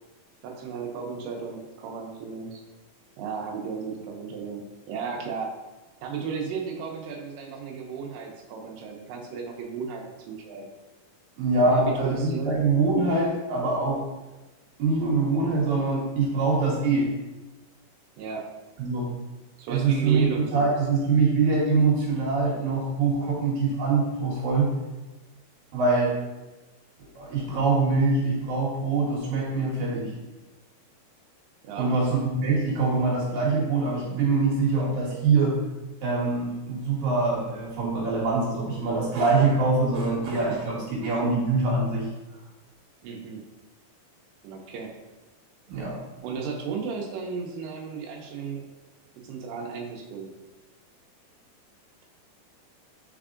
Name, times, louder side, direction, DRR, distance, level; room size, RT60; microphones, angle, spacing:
voice 1, 0.4-2.6 3.2-5.5 6.0-10.7 11.6-12.5 18.2-18.4 19.6-20.8 31.6-32.0 43.0-43.4 44.4-44.9 46.2-48.6 49.2-50.3, right 5 dB, 80° right, 1 dB, 2.2 m, -34 dB
voice 2, 11.4-14.0 14.8-17.1 18.8-19.1 19.7-24.7 25.7-26.1 27.2-30.1 31.8-35.6 36.0-42.1 45.7-46.0, right 3 dB, 65° right, -5 dB, 2.3 m, -24 dB
4.5 x 4.1 x 2.5 m, 1.1 s
omnidirectional pair, 4.1 m